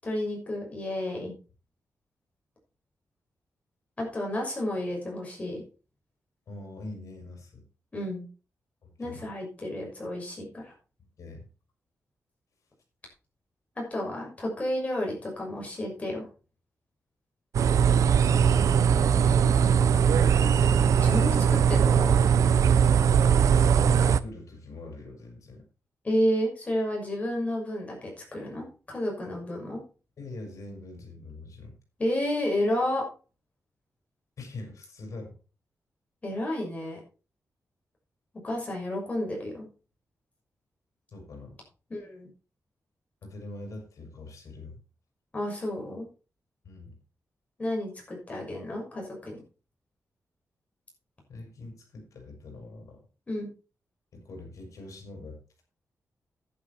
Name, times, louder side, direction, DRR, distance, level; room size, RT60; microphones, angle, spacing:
voice 1, 0.0-1.3 4.0-5.6 7.9-8.2 9.0-10.7 13.8-16.2 21.0-22.2 26.0-29.8 32.0-33.0 36.2-37.0 38.4-39.7 41.9-42.3 45.3-46.1 47.6-49.4 53.3-53.5, left 1 dB, 25° left, -1 dB, 6.3 m, -31 dB
voice 2, 6.5-7.6 8.8-9.3 11.2-11.5 18.2-20.4 23.8-25.6 30.2-31.8 34.4-35.4 41.1-41.6 43.2-44.8 46.6-47.0 51.3-53.0 54.1-55.6, left 2 dB, 70° left, 2 dB, 5.3 m, -43 dB
sound 1, 17.5-24.2, right 7 dB, 70° right, 0.7 m, -20 dB
11.0 x 9.9 x 4.4 m, 0.35 s
wide cardioid pair, 150°, 6 cm